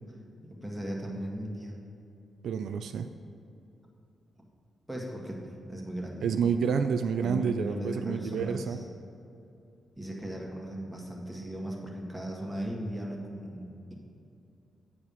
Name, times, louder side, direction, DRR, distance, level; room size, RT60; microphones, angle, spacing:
voice 1, 0.6-1.8 4.9-6.3 7.2-8.8 10.0-13.9, equal, 5° right, -2 dB, 1.8 m, -37 dB
voice 2, 2.4-3.1 6.2-8.8, right 6 dB, 75° right, 8 dB, 0.4 m, -29 dB
8.3 x 4.7 x 7.0 m, 2.6 s
cardioid pair, 75°, 0 cm